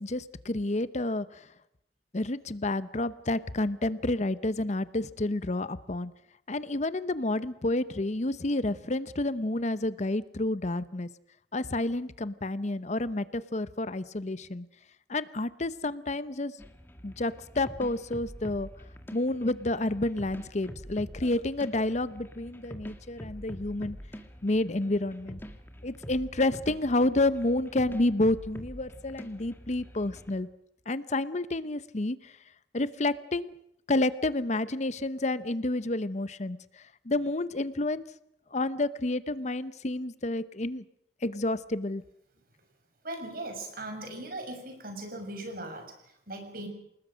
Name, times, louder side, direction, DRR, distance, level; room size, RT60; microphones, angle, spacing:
voice 1, 0.0-1.4 2.1-6.1 6.5-11.1 11.5-14.7 15.1-16.5 17.0-18.7 19.1-24.0 24.4-25.4 25.8-30.5 30.9-32.3 32.7-33.5 33.9-36.6 37.1-38.0 38.5-40.8 41.2-42.0, left 2 dB, 40° left, 15 dB, 0.8 m, -29 dB
sound 1, 16.6-30.3, equal, 10° left, 2.0 m, -46 dB
voice 2, 43.0-46.7, right 1 dB, 55° right, 5 dB, 6.3 m, -39 dB
29.0 x 19.5 x 6.4 m, 0.77 s
head